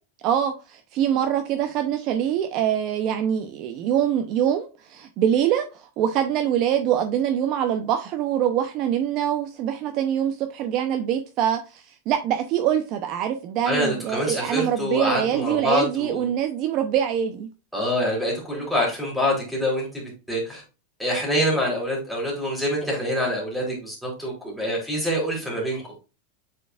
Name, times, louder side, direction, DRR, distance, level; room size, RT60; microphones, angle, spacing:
voice 1, 0.2-17.5, right 10 dB, 35° right, 0.7 m, -24 dB
voice 2, 13.6-16.3 17.7-20.6 21.0-25.9, equal, ahead, 3.2 m, -26 dB
8.2 x 4.7 x 2.4 m
supercardioid pair, 170°, 0 cm